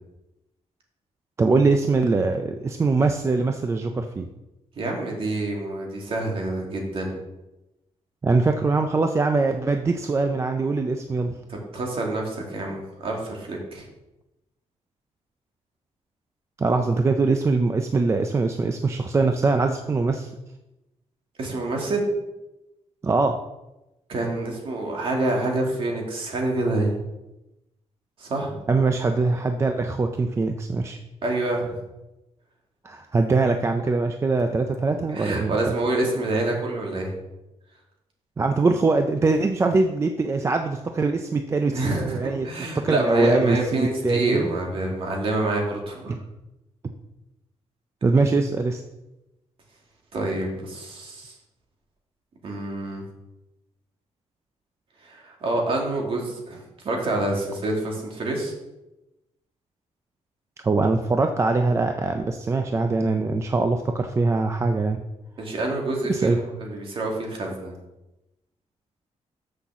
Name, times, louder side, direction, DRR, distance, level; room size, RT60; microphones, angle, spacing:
voice 1, 1.4-4.3 8.2-11.4 16.6-20.3 23.0-23.4 28.7-31.0 32.8-35.7 38.4-42.5 42.8-44.6 48.0-48.8 60.6-65.0 66.1-66.4, right 3 dB, 25° right, 5 dB, 0.4 m, -22 dB
voice 2, 4.8-7.2 11.5-13.9 21.4-22.1 24.1-26.9 28.2-28.6 31.2-31.8 35.1-37.1 41.7-46.1 50.1-51.3 52.4-53.0 55.0-58.5 65.4-67.7, right 2 dB, 45° right, 0 dB, 2.0 m, -27 dB
6.1 x 5.8 x 6.9 m, 0.97 s
wide cardioid pair, 170°, 12 cm